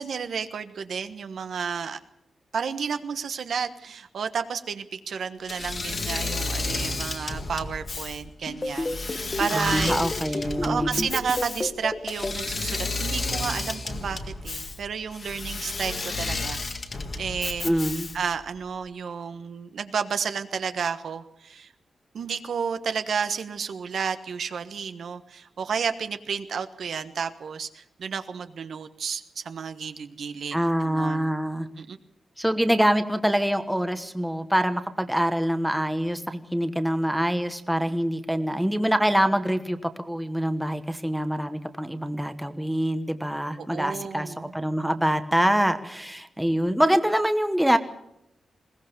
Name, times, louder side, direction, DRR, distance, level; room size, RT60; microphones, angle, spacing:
voice 1, 0.0-2.0 2.5-16.6 17.2-17.7 18.1-21.7 22.1-31.3 31.8-32.0 43.6-44.6, right 6 dB, 70° right, 9 dB, 1.3 m, -31 dB
Engine / Mechanisms, 5.5-18.4, left 3 dB, 40° left, 1.8 m, -32 dB
sound 1, 8.5-12.3, left 2 dB, 20° left, 1.7 m, -29 dB
voice 2, 9.5-11.0 17.6-18.1 30.5-31.7 32.4-47.8, equal, 5° right, 8 dB, 1.2 m, -25 dB
21.0 x 18.5 x 6.9 m, 0.80 s
wide cardioid pair, 150°, 0 cm